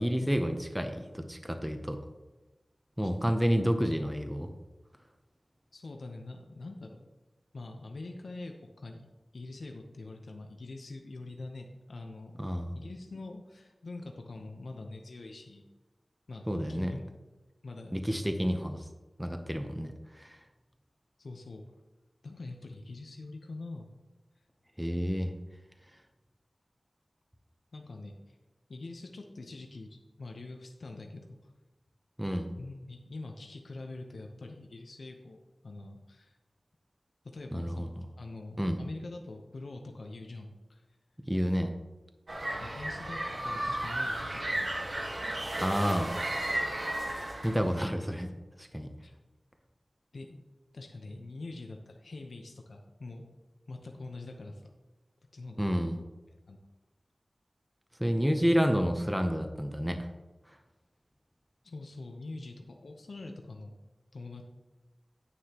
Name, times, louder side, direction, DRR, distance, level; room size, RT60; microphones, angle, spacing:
voice 1, 0.0-2.0 3.0-4.5 12.4-12.7 16.5-16.9 17.9-18.9 19.2-20.4 24.8-25.3 32.2-32.5 37.5-37.9 38.6-38.8 41.3-41.7 45.6-46.1 47.4-48.3 48.6-48.9 55.6-56.0 58.0-60.1, equal, 5° right, 5 dB, 0.8 m, -29 dB
voice 2, 5.7-7.0 7.5-9.0 9.3-15.6 16.3-17.0 17.6-17.9 21.2-21.6 22.2-23.9 27.7-28.4 28.7-31.4 32.6-36.4 37.3-37.9 38.2-40.8 42.6-43.2 43.4-44.8 49.0-49.1 50.1-50.4 50.7-53.2 53.7-54.7 55.3-55.6 56.5-56.6 61.6-63.7 64.1-64.4, left 2 dB, 85° left, 2 dB, 0.9 m, -44 dB
sound 1, 42.3-47.8, right 1 dB, 60° right, 1.5 m, -34 dB
9.8 x 9.4 x 3.0 m, 1.1 s
wide cardioid pair, 85°, 0 cm